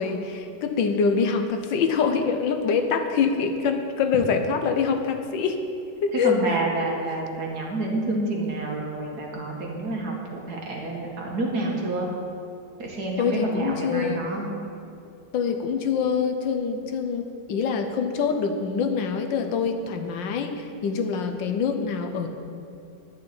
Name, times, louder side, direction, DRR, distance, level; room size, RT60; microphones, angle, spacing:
voice 1, 0.0-5.6 6.0-6.4 13.2-14.2 15.3-22.3, left 5 dB, 85° left, 6 dB, 1.6 m, -25 dB
voice 2, 6.2-12.1 12.8-14.5, right 2 dB, 60° right, -2 dB, 2.3 m, -28 dB
11.0 x 6.1 x 8.7 m, 2.7 s
omnidirectional pair, 2.0 m